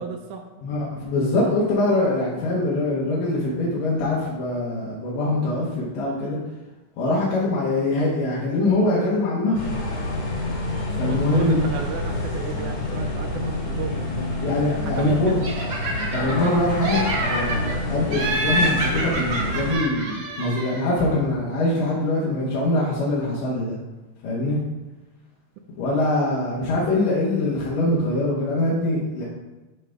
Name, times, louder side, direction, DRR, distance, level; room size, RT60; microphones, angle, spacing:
voice 1, 0.0-0.5 11.0-14.4 14.9-15.4, right 6 dB, 80° right, 5 dB, 2.0 m, -33 dB
voice 2, 0.6-6.4 7.0-9.6 11.0-11.6 14.4-15.3 16.1-23.8 24.2-24.6 25.8-29.2, left 2 dB, 85° left, -7 dB, 3.0 m, -23 dB
sound 1, 9.5-19.7, left 2 dB, 60° left, 3.1 m, -28 dB
Laughter, 15.4-16.5 16.8-17.7 18.1-20.9, right 2 dB, 50° right, 1.6 m, -27 dB
11.5 x 4.0 x 3.5 m, 1.1 s
omnidirectional pair, 3.7 m